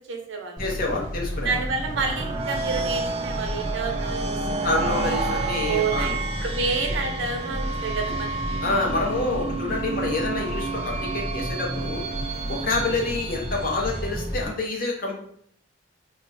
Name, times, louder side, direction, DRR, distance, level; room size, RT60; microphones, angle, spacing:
voice 1, 0.1-0.7 1.4-4.7 5.6-8.6 10.1-10.3 13.0-13.2, right 4 dB, 80° right, 4 dB, 0.6 m, -29 dB
voice 2, 0.6-1.6 4.6-6.4 8.6-12.0 12.5-15.1, left 2 dB, 50° left, -1 dB, 0.7 m, -27 dB
sound 1, 0.6-14.4, equal, 20° left, 1.0 m, -32 dB
sound 2, 1.7-14.3, right 4 dB, 35° right, 0.3 m, -31 dB
2.3 x 2.2 x 3.8 m, 0.67 s
head